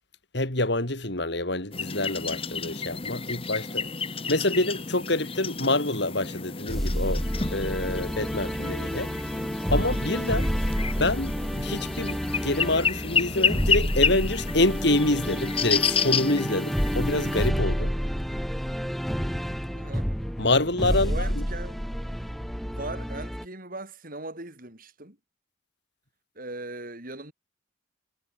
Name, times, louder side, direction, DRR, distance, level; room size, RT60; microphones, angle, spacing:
voice 1, 0.3-3.9 4.3-7.2 7.5-9.1 9.7-10.5 11.0-17.9 20.4-21.4, left 2 dB, 60° left, 3.8 m, -27 dB
sound 1, 1.7-17.5, left 6 dB, 30° left, 1.4 m, -30 dB
Day of defeat, 6.7-23.4, equal, ahead, 1.7 m, -29 dB
voice 2, 19.7-20.1 20.9-21.8 22.7-25.2 26.4-27.3, right 2 dB, 45° right, 5.4 m, -39 dB
head